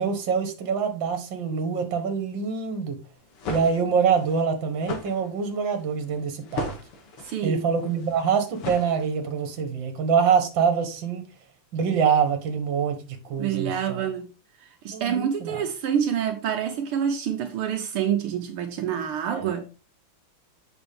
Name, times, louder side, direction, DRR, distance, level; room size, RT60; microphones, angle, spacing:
voice 1, 0.0-3.0 3.5-6.7 7.4-11.2 11.7-14.1 14.9-15.7 19.3-19.5, right 6 dB, 60° right, 2.1 m, -25 dB
sound 1, 3.1-9.4, left 2 dB, 90° left, 2.5 m, -37 dB
voice 2, 7.2-7.6 13.4-14.3 14.6-19.6, right 8 dB, 80° right, 1.8 m, -27 dB
8.1 x 6.0 x 3.6 m
omnidirectional pair, 2.4 m